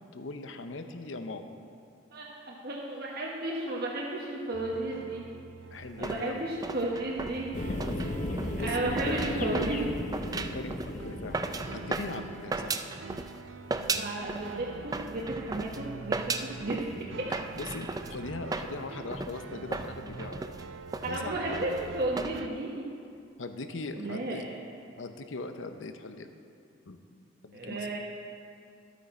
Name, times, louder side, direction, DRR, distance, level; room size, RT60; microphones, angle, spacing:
voice 1, 0.1-1.5 5.7-6.5 7.9-8.1 8.6-9.5 10.3-12.8 17.3-20.4 21.1-21.4 23.4-24.4 25.0-26.3 26.9-27.0 27.4-27.9, left 3 dB, 90° left, 7 dB, 0.8 m, -40 dB
voice 2, 2.1-5.3 6.0-7.5 8.6-10.1 14.0-17.4 21.0-22.8 24.0-24.6 27.5-28.0, right 2 dB, 55° right, -3 dB, 1.1 m, -33 dB
sound 1, 4.5-22.5, right 4 dB, 80° right, 0.5 m, -46 dB
sound 2, 5.8-13.4 13.7-14.5 14.9-22.4, right 3 dB, 20° right, 0.4 m, -36 dB
sound 3, 7.5-12.5, left 1 dB, 40° left, 0.8 m, -36 dB
12.5 x 8.5 x 4.3 m, 2.4 s
head